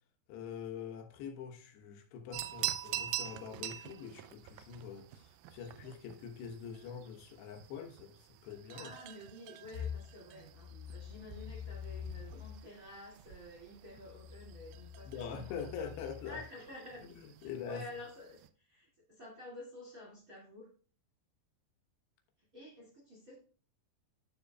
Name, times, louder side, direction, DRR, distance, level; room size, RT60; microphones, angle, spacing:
voice 1, 0.3-8.9 15.1-16.4 17.4-17.9, left 7 dB, 85° left, 3.3 m, -44 dB
sound 1, 2.3-18.5, right 13 dB, 80° right, 2.2 m, -46 dB
voice 2, 8.7-15.7 16.2-20.7 22.5-23.4, left 1 dB, 30° right, 1.9 m, -50 dB
sound 2, 9.7-12.6 13.2-16.4, left 8 dB, 55° left, 3.8 m, -46 dB
12.5 x 6.8 x 2.3 m
omnidirectional pair, 4.7 m